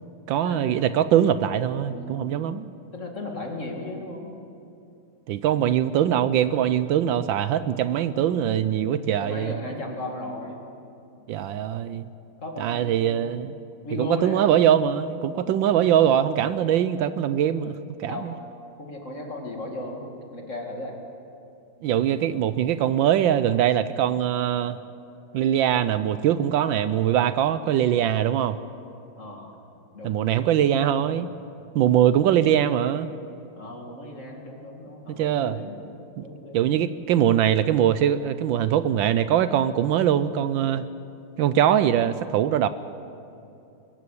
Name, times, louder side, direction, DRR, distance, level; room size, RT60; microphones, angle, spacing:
voice 1, 0.3-2.7 5.3-9.5 11.3-12.0 12.6-13.5 14.0-17.7 18.0-18.3 21.8-24.8 25.3-28.6 30.0-31.3 31.7-33.1 35.1-35.6 36.2-36.3 36.5-40.8 41.4-42.7, right 10 dB, 75° right, 13 dB, 1.3 m, -22 dB
voice 2, 1.8-2.3 2.9-4.3 8.9-10.6 12.4-13.1 13.8-14.6 15.4-15.8 18.0-18.3 18.8-20.9 29.2-29.5 29.9-30.2 33.5-35.8 36.2-36.7, left 1 dB, 40° left, 1 dB, 2.5 m, -35 dB
22.5 x 14.0 x 8.5 m, 2.7 s
omnidirectional pair, 2.2 m